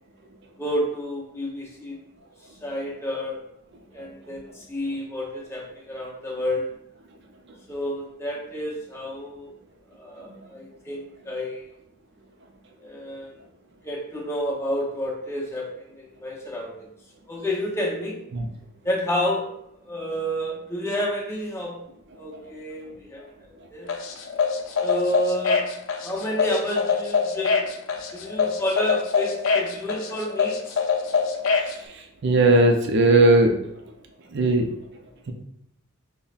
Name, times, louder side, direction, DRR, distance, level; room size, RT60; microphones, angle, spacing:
voice 1, 0.6-2.0 2.6-3.4 3.9-6.7 7.7-9.5 9.9-11.7 12.8-13.4 13.8-16.9 17.3-18.2 18.8-19.5 19.8-21.8 22.2-23.9 24.8-25.7 26.0-27.7 28.1-30.8, equal, 15° left, -3 dB, 0.7 m, -30 dB
sound 1, 23.9-31.7, left 5 dB, 80° left, 0.4 m, -24 dB
voice 2, 32.2-33.5 34.3-34.7, right 2 dB, 60° right, 4 dB, 0.5 m, -17 dB
5.3 x 2.1 x 2.4 m, 0.77 s
head